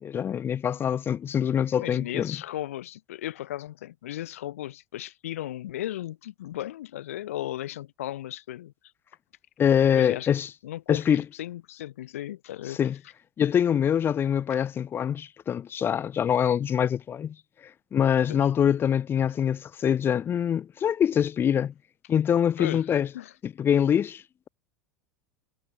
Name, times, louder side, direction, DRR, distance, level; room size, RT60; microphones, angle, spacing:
voice 1, 0.0-2.4 9.6-10.5 10.9-11.2 12.7-13.0 13.4-17.4 17.9-21.7 22.1-23.1 23.4-24.5, left 8 dB, 30° left, 0.7 m, -24 dB
voice 2, 1.7-8.7 9.9-10.3 10.6-12.8 18.3-18.5 22.6-22.9 23.1-23.3, left 13 dB, 70° left, 3.0 m, -36 dB
figure-of-eight pair, 80°, 8 cm